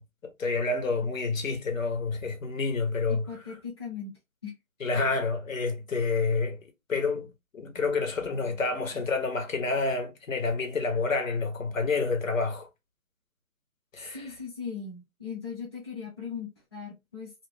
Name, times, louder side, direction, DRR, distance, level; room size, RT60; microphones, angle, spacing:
voice 1, 0.0-3.3 4.8-6.6 6.9-12.7 13.9-14.3, left 4 dB, 65° left, 1.1 m, -29 dB
voice 2, 3.1-4.1 4.4-4.5 14.0-17.3, left 6 dB, 20° left, 0.7 m, -38 dB
2.3 x 2.1 x 3.5 m
hypercardioid pair, 165°, 43 cm